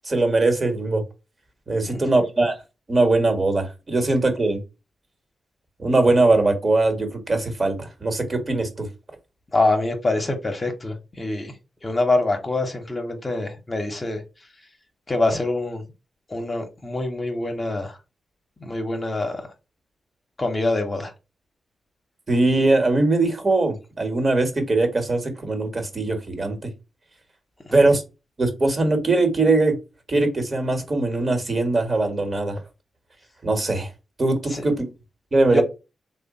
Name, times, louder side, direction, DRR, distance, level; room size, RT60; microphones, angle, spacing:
voice 1, 0.1-1.0 1.7-2.5 2.9-4.6 5.8-8.9 22.3-26.6 27.7-28.0 28.4-29.8 30.1-32.6 33.4-33.9 34.2-34.9 35.3-35.6, right 2 dB, 40° right, 1.3 m, -21 dB
voice 2, 9.5-11.5 11.8-14.2 15.1-15.8 16.3-18.0 18.6-19.4 20.4-21.1 34.5-34.6 35.5-35.6, left 2 dB, 35° left, 0.9 m, -25 dB
3.2 x 2.2 x 3.9 m
supercardioid pair, 45°, 0 cm